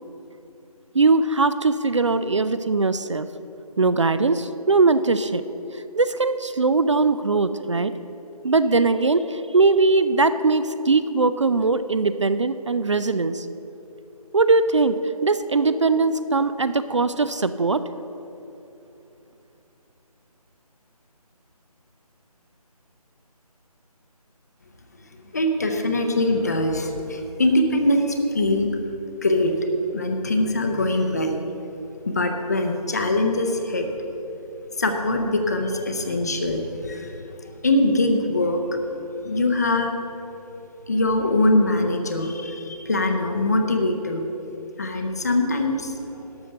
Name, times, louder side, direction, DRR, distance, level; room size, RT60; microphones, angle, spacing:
voice 1, 0.9-3.3 3.8-5.4 5.7-7.9 8.4-13.5 14.3-17.8, right 3 dB, 50° right, 13 dB, 0.4 m, -20 dB
voice 2, 25.3-28.7 29.2-29.7 29.9-31.4 32.1-33.9 34.8-37.2 37.6-38.8 39.2-39.9 40.9-44.2 44.8-45.9, left 1 dB, 25° left, 5 dB, 0.6 m, -22 dB
12.0 x 6.3 x 6.7 m, 2.9 s
figure-of-eight pair, 160°, 20 cm